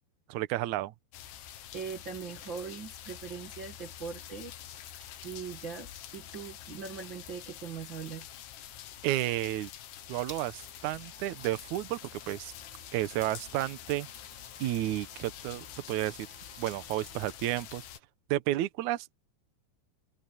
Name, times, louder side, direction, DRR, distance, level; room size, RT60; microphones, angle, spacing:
voice 1, 0.3-0.9 9.0-9.7 10.1-12.5 12.9-14.1 14.6-16.3 16.6-17.8 18.3-19.1, right 15 dB, 85° right, 1.7 m, -32 dB
sound 1, 1.1-18.0, left 11 dB, 90° left, 3.7 m, -47 dB
voice 2, 1.7-4.6 5.2-8.3, right 6 dB, 45° right, 1.5 m, -41 dB
sound 2, 4.4-17.9, right 3 dB, 25° right, 2.5 m, -60 dB
sound 3, 10.5-17.2, right 8 dB, 70° right, 5.0 m, -61 dB
open air
omnidirectional pair, 4.7 m